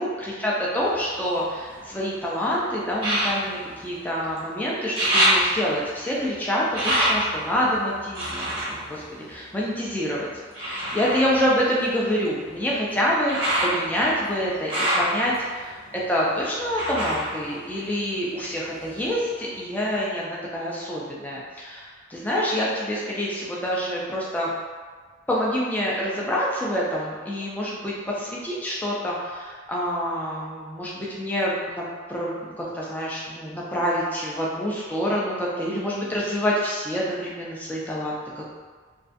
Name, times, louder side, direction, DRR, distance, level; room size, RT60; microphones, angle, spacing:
voice 1, 0.0-10.3 10.6-24.5 25.3-38.4, equal, 10° left, -5 dB, 0.3 m, -27 dB
sound 1, 0.8-2.1 3.0-4.5 4.7-9.9 10.5-18.4 18.7-19.5 20.0-20.1, equal, 25° right, 0.7 m, -27 dB
2.4 x 2.3 x 2.5 m, 1.5 s
head